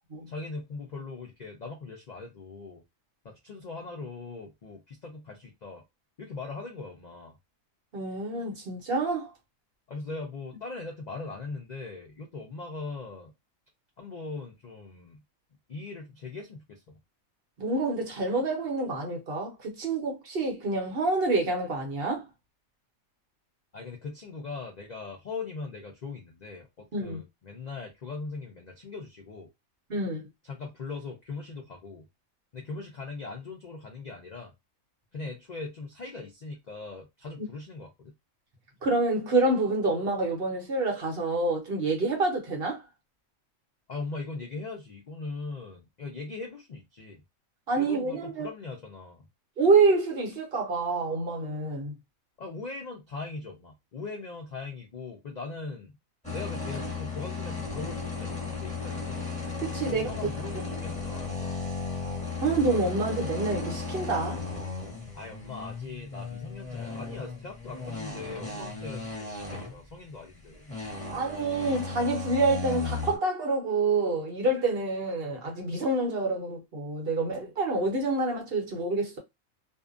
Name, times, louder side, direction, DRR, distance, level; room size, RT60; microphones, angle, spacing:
voice 1, 0.3-2.8 3.2-5.8 6.2-7.4 9.9-13.3 14.0-15.2 15.7-17.0 23.7-29.5 30.4-32.0 32.5-34.5 35.1-38.1 43.9-47.2 47.7-49.2 52.4-56.0 56.3-59.2 59.9-61.7 65.1-70.6, left 3 dB, 80° left, 0.4 m, -40 dB
voice 2, 7.9-9.3 17.6-22.2 26.9-27.2 29.9-30.3 38.8-42.8 47.7-48.5 49.6-51.9 59.6-60.1 62.4-64.4 71.1-79.2, right 3 dB, 50° right, 0.9 m, -27 dB
sound 1, 56.2-70.2 70.5-73.2, left 4 dB, 5° left, 1.1 m, -35 dB
2.6 x 2.2 x 2.4 m
omnidirectional pair, 1.5 m